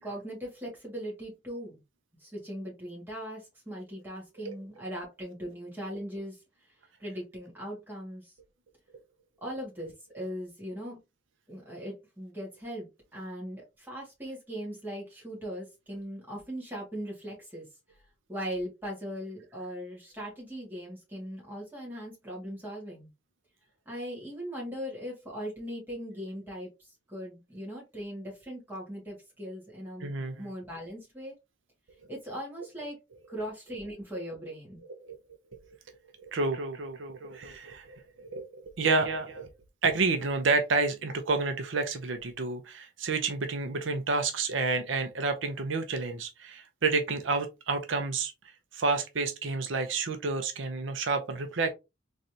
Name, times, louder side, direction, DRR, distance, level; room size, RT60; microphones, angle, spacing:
voice 1, 0.0-1.8 2.2-6.7 7.0-8.3 9.4-11.0 11.5-17.7 18.3-23.1 23.9-30.1 30.4-31.3 32.1-33.0 33.3-34.8, equal, 10° right, 1.9 m, -39 dB
voice 2, 30.0-30.5 34.9-35.2 36.2-39.5 39.8-48.3 48.7-51.7, right 3 dB, 80° right, 0.7 m, -30 dB
4.0 x 3.2 x 2.7 m
head